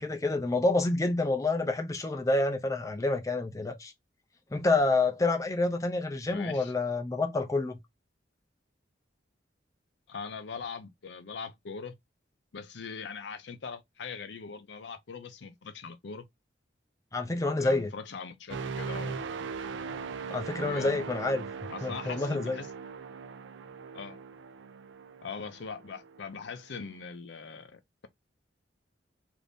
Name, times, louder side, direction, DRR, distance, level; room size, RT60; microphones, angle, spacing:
voice 1, 0.0-3.9 4.5-7.8 17.1-17.9 20.3-21.5 21.8-22.6, left 2 dB, 20° left, 0.4 m, -28 dB
voice 2, 6.3-6.7 10.1-11.9 12.5-16.2 17.6-19.3 20.6-21.0 21.7-22.7 23.9-24.2 25.2-28.1, left 5 dB, 70° left, 0.5 m, -41 dB
sound 1, 18.5-26.3 26.8-27.0, right 5 dB, 80° right, 0.4 m, -40 dB
2.6 x 2.6 x 3.4 m
head